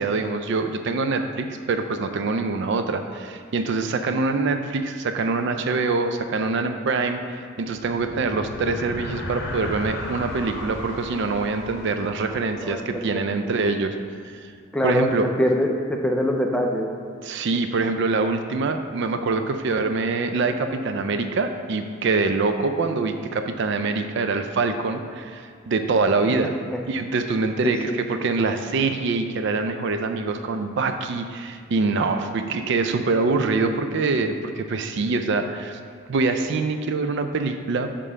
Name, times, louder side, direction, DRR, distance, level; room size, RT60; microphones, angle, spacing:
voice 1, 0.0-13.9 14.3-14.5 14.8-15.3 17.2-26.5 26.9-35.8 36.1-37.9, right 3 dB, 60° right, 7 dB, 0.4 m, -24 dB
sound 1, 7.6-13.3, left 1 dB, 55° left, 0.8 m, -35 dB
voice 2, 12.6-13.2 14.7-15.1 15.4-16.9 27.6-28.0, equal, 5° left, 1 dB, 0.5 m, -23 dB
6.8 x 3.7 x 5.4 m, 2.1 s
head